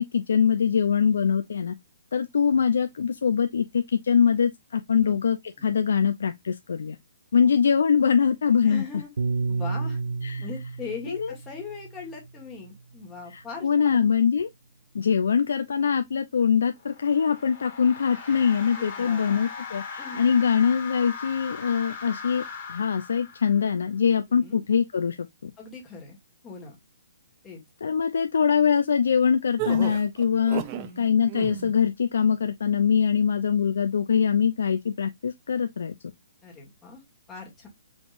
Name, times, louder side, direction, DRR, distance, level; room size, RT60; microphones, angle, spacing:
voice 1, 0.0-1.8 2.1-7.0 7.3-8.8 10.2-10.4 11.1-11.3 13.3-14.5 14.9-25.5 27.8-30.6 31.0-35.9, left 7 dB, 75° left, 0.5 m, -23 dB
voice 2, 8.6-9.1 9.5-10.0 10.4-14.1 18.7-19.4 20.0-20.2 24.3-24.6 25.6-26.2 26.4-26.8 27.4-27.6 30.7-31.2 36.4-37.0 37.3-37.7, left 5 dB, 10° left, 1.6 m, -40 dB
Piano, 9.2-13.6, right 4 dB, 85° right, 0.6 m, -32 dB
sound 1, 16.8-23.8, left 5 dB, 30° left, 1.9 m, -39 dB
sound 2, 29.6-30.9 31.3-31.7, right 14 dB, 25° right, 0.4 m, -32 dB
5.0 x 3.6 x 2.5 m
hypercardioid pair, 170°, 0 cm